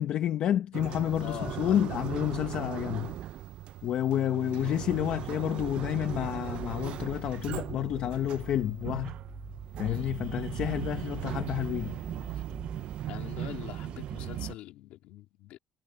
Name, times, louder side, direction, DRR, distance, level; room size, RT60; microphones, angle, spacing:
voice 1, 0.0-3.2 3.8-9.1 9.8-12.0, left 11 dB, 55° left, 1.3 m, -30 dB
sound 1, 0.7-14.5, right 12 dB, 55° right, 0.7 m, -38 dB
voice 2, 1.2-1.8 4.5-4.8 9.8-10.2 12.3-12.4 13.1-15.6, left 15 dB, 75° left, 2.9 m, -43 dB
sound 2, 5.6-13.0, left 2 dB, 10° left, 2.8 m, -48 dB
cardioid pair, 135°, 2 cm